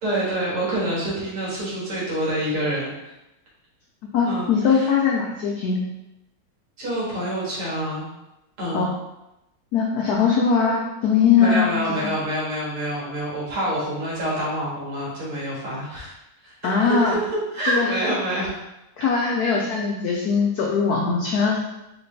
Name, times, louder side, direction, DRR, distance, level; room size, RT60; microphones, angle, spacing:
voice 1, 0.0-3.1 4.3-4.9 6.8-8.1 8.6-8.9 11.4-16.1 16.4-16.5 16.9-17.2 17.5-18.5, right 1 dB, 90° right, -6 dB, 2.6 m, -27 dB
voice 2, 4.1-5.9 8.7-8.9 9.7-12.1 16.6-17.1 17.7-17.9 19.0-21.6, left 5 dB, 90° left, -1 dB, 0.8 m, -21 dB
5.0 x 3.1 x 3.2 m, 0.92 s
omnidirectional pair, 2.3 m